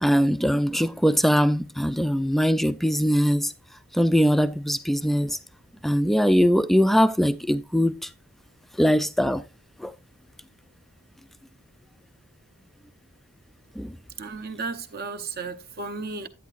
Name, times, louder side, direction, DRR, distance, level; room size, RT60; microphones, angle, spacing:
voice 1, 0.0-3.5 3.9-5.4 5.8-8.1 8.8-9.4 9.8-9.9 13.8-13.9, equal, ahead, 0.3 m, -21 dB
voice 2, 14.2-16.3, right 4 dB, 45° right, 0.9 m, -34 dB
10.5 x 9.0 x 2.4 m
head